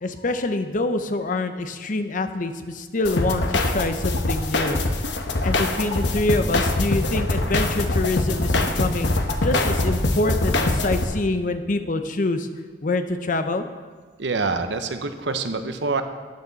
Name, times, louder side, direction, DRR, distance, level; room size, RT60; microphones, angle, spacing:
voice 1, 0.0-4.8 5.4-9.1 9.4-12.5 12.8-13.6, left 2 dB, 50° left, 8 dB, 0.7 m, -25 dB
sound 1, 3.1-11.0, left 2 dB, 90° left, 1.0 m, -23 dB
voice 2, 14.2-16.0, right 3 dB, 90° right, 8 dB, 0.9 m, -26 dB
13.0 x 9.3 x 4.1 m, 1.5 s
head